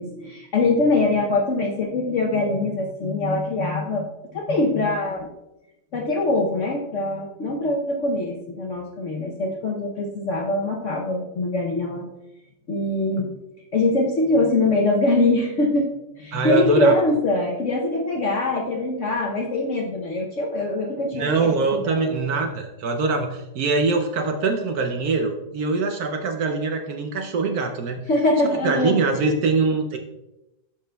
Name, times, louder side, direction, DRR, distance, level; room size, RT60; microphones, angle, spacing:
voice 1, 0.0-4.1 4.3-5.3 5.9-12.1 12.7-13.3 13.7-15.9 16.2-22.2 28.1-29.3, left 2 dB, 55° left, 0 dB, 0.9 m, -23 dB
voice 2, 16.3-17.0 21.1-28.0 28.4-30.0, right 4 dB, 65° right, 4 dB, 1.0 m, -23 dB
11.5 x 5.1 x 2.3 m, 0.93 s
omnidirectional pair, 2.0 m